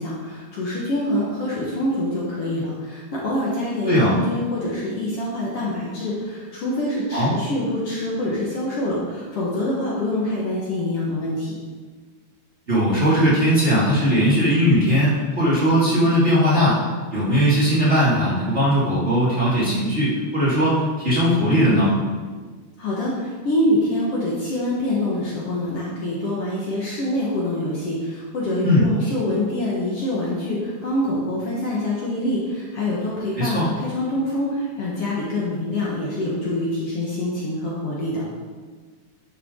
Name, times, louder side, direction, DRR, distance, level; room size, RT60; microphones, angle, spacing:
voice 1, 0.0-11.5 22.8-38.3, left 1 dB, 55° left, -5 dB, 2.2 m, -25 dB
voice 2, 12.7-16.8 17.1-21.9 28.6-28.9 33.4-33.6, equal, 25° right, -9 dB, 2.3 m, -19 dB
10.0 x 6.8 x 3.8 m, 1.5 s
omnidirectional pair, 3.3 m